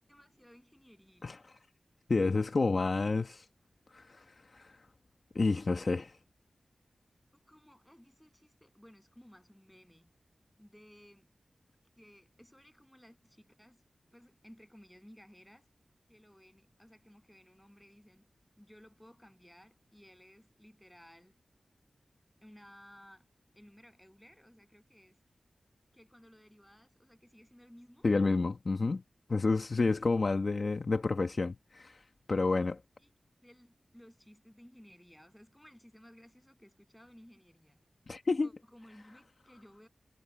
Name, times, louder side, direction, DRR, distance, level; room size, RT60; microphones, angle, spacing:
voice 1, 0.0-1.4 7.3-10.1 10.6-11.3 12.0-13.8 14.1-15.7 16.1-18.3 18.6-21.3 22.4-23.3 23.5-25.2 25.9-28.1 30.0-30.2 32.3-32.7 33.0-33.1 33.4-37.8 38.4-39.9, equal, 5° left, 7.8 m, -58 dB
voice 2, 1.2-1.5 2.1-3.4 3.9-4.2 4.5-4.7 5.3-6.2 28.0-29.0 29.3-32.0 32.3-32.8 38.1-38.5, left 3 dB, 50° left, 1.2 m, -29 dB
wide cardioid pair, 110°, 0 cm